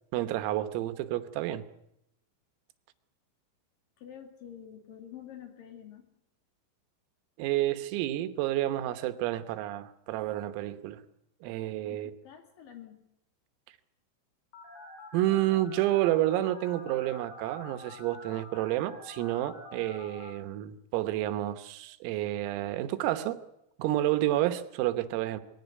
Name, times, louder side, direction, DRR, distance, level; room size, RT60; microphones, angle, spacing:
voice 1, 0.1-1.6 7.4-11.0 11.4-12.1 15.1-23.4 23.8-25.4, right 14 dB, 85° right, 3.9 m, -30 dB
voice 2, 4.0-6.0 11.9-13.0, left 9 dB, 50° left, 3.5 m, -48 dB
Telephone, 14.5-20.3, left 2 dB, 70° left, 8.7 m, -47 dB
22.0 x 16.5 x 9.4 m
omnidirectional pair, 5.9 m